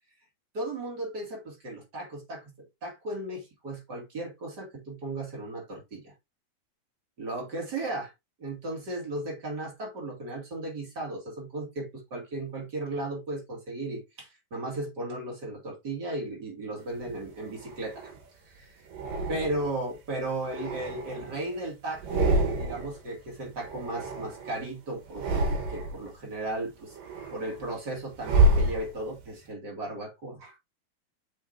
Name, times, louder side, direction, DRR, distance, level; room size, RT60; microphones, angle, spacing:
voice 1, 0.5-6.1 7.2-8.1 8.4-18.1 18.4-18.8 19.3-27.0 27.3-30.6, right 2 dB, 30° right, 2.5 m, -35 dB
sound 1, 17.0-18.2 18.9-19.9 20.3-21.6 21.9-23.0 23.3-24.7 25.1-26.1 26.6-29.3, right 2 dB, 70° right, 2.9 m, -28 dB
7.2 x 5.3 x 2.6 m
omnidirectional pair, 4.2 m